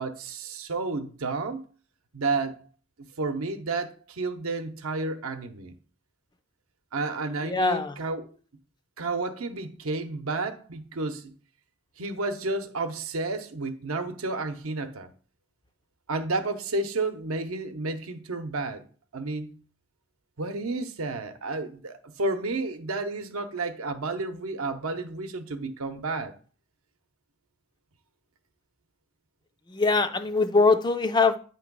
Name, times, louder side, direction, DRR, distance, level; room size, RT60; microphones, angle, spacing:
voice 1, 0.0-1.6 2.1-2.5 3.2-5.7 6.9-8.3 9.0-11.3 12.0-15.1 16.1-18.8 19.1-19.6 20.4-26.3, right 3 dB, 75° right, 0.8 m, -31 dB
voice 2, 7.4-8.0 29.7-31.4, left 4 dB, 20° left, 0.4 m, -22 dB
8.7 x 3.0 x 6.0 m
head